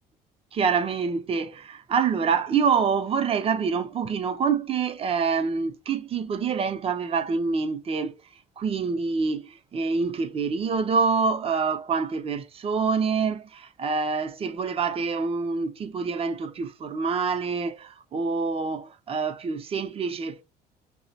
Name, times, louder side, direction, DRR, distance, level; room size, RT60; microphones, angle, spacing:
voice 1, 0.5-8.2 8.6-20.4, right 5 dB, 35° right, 0.5 m, -26 dB
5.5 x 2.0 x 2.7 m
cardioid pair, 110°, 17 cm